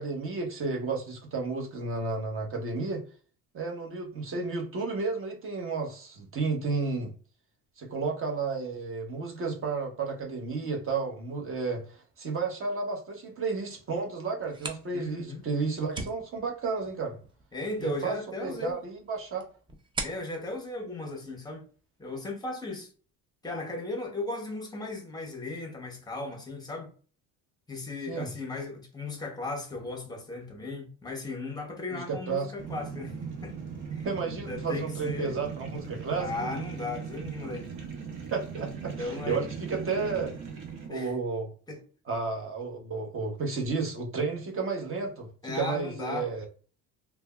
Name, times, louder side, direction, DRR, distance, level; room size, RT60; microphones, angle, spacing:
voice 1, 0.0-3.0 3.5-7.1 7.8-17.2 17.8-18.1 18.4-19.5 28.1-28.3 31.9-32.5 34.0-36.5 38.3-40.3 40.9-41.5 42.1-46.5, right 4 dB, 35° right, 1.0 m, -32 dB
Zippo open - light - close, 14.3-21.9, right 3 dB, 15° right, 0.4 m, -43 dB
voice 2, 14.9-15.4 17.5-18.8 20.0-21.7 22.0-22.9 23.4-26.9 27.7-33.6 33.9-34.1 34.5-35.3 36.2-37.7 39.0-39.4 40.9-41.1 41.7-41.8 45.4-46.3, left 2 dB, 10° left, 0.7 m, -36 dB
sound 1, 32.6-40.9, right 6 dB, 70° right, 0.9 m, -39 dB
3.2 x 2.2 x 2.2 m
cardioid pair, 115°, 36 cm